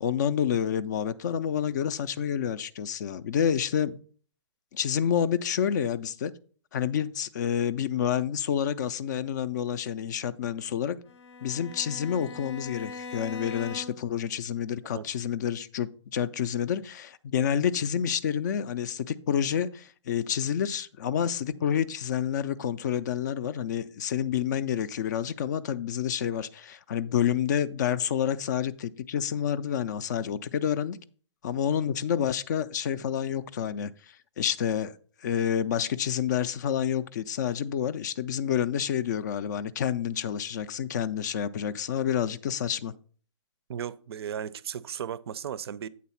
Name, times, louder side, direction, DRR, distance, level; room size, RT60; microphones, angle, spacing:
voice 1, 0.0-4.0 4.7-6.3 6.7-11.0 11.4-31.0 31.4-33.9 34.4-34.9 35.2-42.9, left 9 dB, 40° left, 0.4 m, -28 dB
Bowed string instrument, 11.1-14.2, left 4 dB, 70° left, 0.7 m, -41 dB
voice 2, 43.7-45.9, right 9 dB, 55° right, 0.4 m, -35 dB
8.4 x 4.0 x 5.6 m
hypercardioid pair, 150°, 15 cm